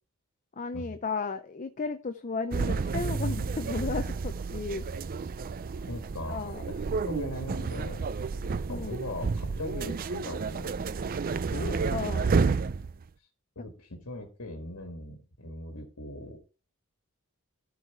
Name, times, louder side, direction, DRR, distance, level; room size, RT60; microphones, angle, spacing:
voice 1, 0.6-4.8 6.3-6.6 8.7-9.0 11.5-12.3, left 4 dB, 35° left, 9 dB, 0.6 m, -34 dB
sound 1, 2.5-13.0, right 4 dB, 40° right, 0.4 m, -31 dB
voice 2, 5.9-8.1 8.7-10.7 11.7-11.9 13.6-16.4, left 1 dB, 70° left, 4 dB, 1.7 m, -39 dB
13.5 x 4.8 x 4.6 m, 0.36 s
head